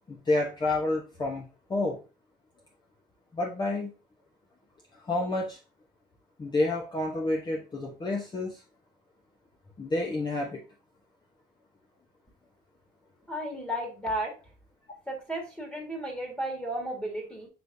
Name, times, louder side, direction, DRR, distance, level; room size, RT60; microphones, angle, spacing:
voice 1, 0.1-2.0 3.3-3.9 5.0-5.6 6.4-8.6 9.8-10.6, left 2 dB, 25° left, -1 dB, 0.8 m, -29 dB
voice 2, 13.3-14.3 15.1-17.5, right 1 dB, 5° left, 0 dB, 1.5 m, -33 dB
6.0 x 3.4 x 2.6 m, 0.32 s
cardioid pair, 110°, 17 cm